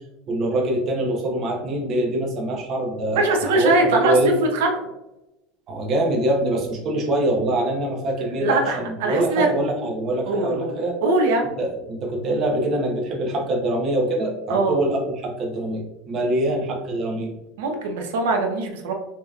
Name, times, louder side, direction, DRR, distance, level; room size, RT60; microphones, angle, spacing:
voice 1, 0.3-4.4 5.7-11.0 11.6-17.3, right 1 dB, 35° right, 0 dB, 0.8 m, -24 dB
voice 2, 3.1-4.7 8.2-9.5 10.3-11.5 14.5-14.8 17.6-18.9, right 2 dB, 85° right, 3 dB, 0.9 m, -22 dB
5.2 x 2.9 x 2.4 m, 0.93 s
supercardioid pair, 150°, 0 cm